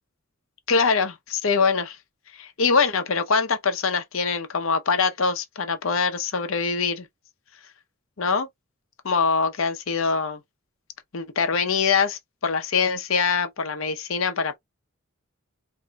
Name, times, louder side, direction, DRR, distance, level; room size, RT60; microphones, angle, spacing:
voice 1, 0.7-2.0 2.3-7.1 8.2-8.5 9.0-10.4 11.1-14.6, left 5 dB, 70° left, 0.7 m, -23 dB
2.7 x 2.2 x 3.9 m
head